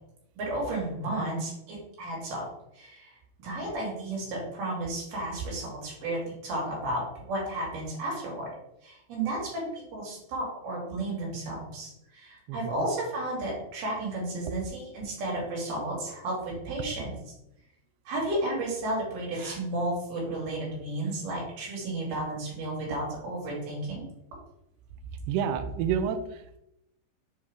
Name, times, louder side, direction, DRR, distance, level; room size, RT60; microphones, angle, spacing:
voice 1, 0.4-2.5 2.7-3.1 3.4-8.5 8.8-17.1 18.1-24.0, right 1 dB, 60° right, -4 dB, 3.9 m, -33 dB
voice 2, 12.5-12.9 25.3-26.6, right 7 dB, 90° right, 8 dB, 2.2 m, -29 dB
7.5 x 2.9 x 4.8 m, 0.82 s
omnidirectional pair, 5.1 m